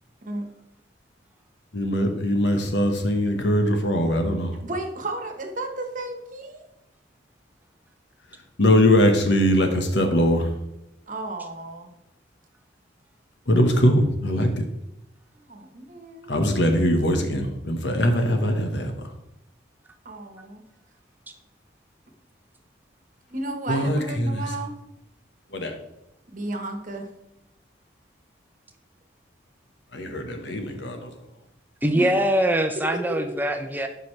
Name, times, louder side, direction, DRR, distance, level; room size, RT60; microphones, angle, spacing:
voice 1, 1.7-4.5 8.6-10.5 13.5-14.6 16.3-18.9 23.7-24.5 25.5-25.7 29.9-31.1, equal, 80° left, 5 dB, 1.3 m, -21 dB
voice 2, 4.6-6.7 11.1-11.9 15.4-16.3 20.0-20.6 23.3-24.7 26.3-27.1 31.9-32.1, right 2 dB, 45° right, 4 dB, 1.3 m, -33 dB
voice 3, 31.8-33.9, right 1 dB, 10° right, 6 dB, 0.6 m, -23 dB
12.0 x 5.4 x 3.3 m, 0.84 s
head